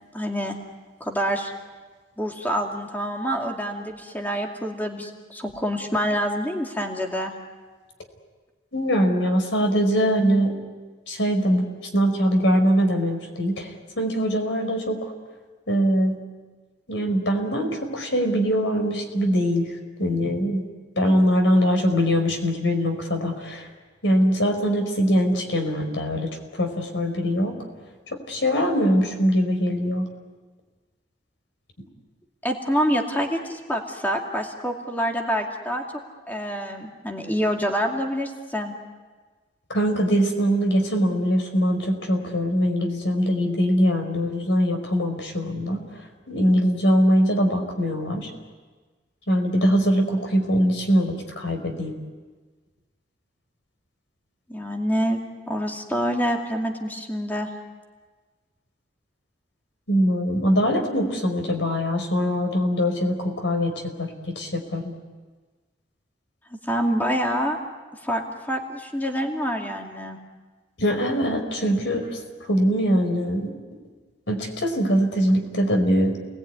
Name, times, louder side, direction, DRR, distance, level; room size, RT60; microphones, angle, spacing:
voice 1, 0.1-0.6 1.0-1.5 2.2-7.3 32.4-35.8 36.3-38.7 54.5-55.2 55.5-57.5 66.6-67.6 68.0-70.2, equal, 10° left, 1 dB, 2.4 m, -26 dB
voice 2, 8.7-10.5 11.1-11.7 11.9-13.7 14.0-15.1 15.7-16.2 16.9-19.7 20.0-20.6 21.0-23.7 24.0-26.3 26.6-27.5 28.3-30.1 39.7-45.8 46.3-48.3 49.3-51.9 59.9-64.9 70.8-72.1 72.5-73.5 74.3-76.2, equal, 80° left, 5 dB, 5.0 m, -22 dB
29.5 x 20.5 x 9.6 m, 1.4 s
head